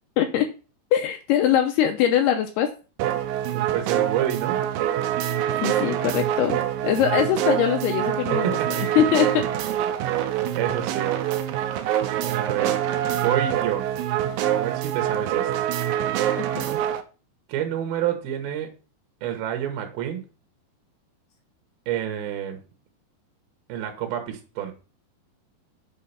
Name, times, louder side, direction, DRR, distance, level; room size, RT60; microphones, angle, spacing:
voice 1, 0.9-2.7 5.6-9.4 16.4-16.7, left 10 dB, 80° left, 6 dB, 2.5 m, -22 dB
sound 1, 3.0-17.0, right 11 dB, 90° right, 2.0 m, -25 dB
voice 2, 3.5-4.6 8.3-8.8 10.5-11.1 12.2-12.8 13.2-13.9 14.5-15.5 17.5-18.7 19.2-20.2 21.9-22.6 23.7-24.7, right 10 dB, 70° right, 5 dB, 2.7 m, -28 dB
7.8 x 4.7 x 5.6 m, 0.34 s
omnidirectional pair, 5.2 m